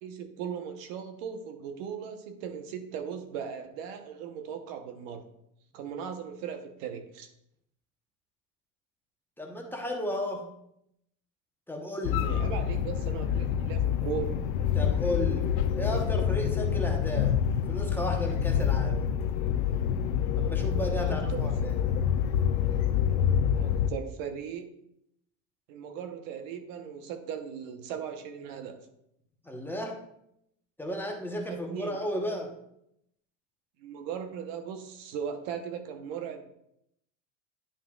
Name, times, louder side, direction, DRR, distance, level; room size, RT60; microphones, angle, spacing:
voice 1, 0.0-5.3 5.7-7.3 12.1-14.3 21.0-21.5 23.6-24.7 25.7-28.9 31.5-32.0 33.8-36.5, right 7 dB, 70° right, 6 dB, 1.1 m, -38 dB
voice 2, 9.4-10.5 11.7-12.3 14.7-17.4 17.7-19.0 20.4-21.8 29.4-30.0 30.8-32.5, equal, 5° left, 1 dB, 1.1 m, -34 dB
sound 1, 12.0-23.9, left 8 dB, 75° left, 0.7 m, -27 dB
10.0 x 5.6 x 2.4 m, 0.77 s
supercardioid pair, 115°, 42 cm